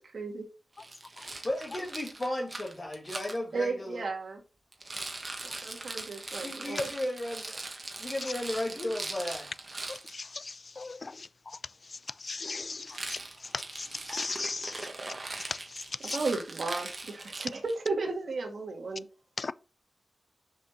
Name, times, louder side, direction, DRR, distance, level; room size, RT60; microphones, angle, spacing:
voice 1, 0.1-0.4 3.5-4.4 5.4-6.8 16.1-19.1, right 3 dB, 75° right, 1.9 m, -34 dB
Rattle, 0.8-3.4 4.7-10.1 12.9-17.8, right 2 dB, 45° right, 1.4 m, -41 dB
voice 2, 1.4-4.1 6.4-7.6 8.0-9.5, left 1 dB, 35° left, 2.1 m, -34 dB
voice 3, 12.3-12.8 14.1-14.7 16.1-16.2 19.4-19.5, left 3 dB, 55° left, 0.4 m, -34 dB
6.1 x 5.1 x 4.0 m
cardioid pair, 55°, 0 cm